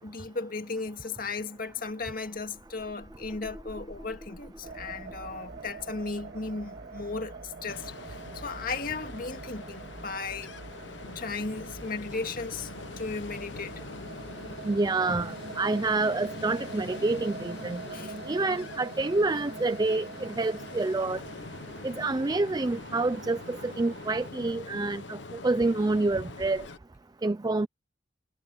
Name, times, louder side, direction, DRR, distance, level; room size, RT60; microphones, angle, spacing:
voice 1, 0.0-10.5 11.2-12.7 13.0-13.8 17.9-18.2, left 4 dB, 50° left, 2.0 m, -36 dB
sound 1, 1.5-6.5, equal, ahead, 6.6 m, -49 dB
sound 2, 4.6-24.3, right 3 dB, 60° right, 1.8 m, -44 dB
Ocean, 7.7-26.8, left 3 dB, 80° left, 0.9 m, -44 dB
voice 2, 14.7-17.8 18.3-21.2 21.8-26.7 27.2-27.7, right 3 dB, 20° right, 0.4 m, -28 dB
head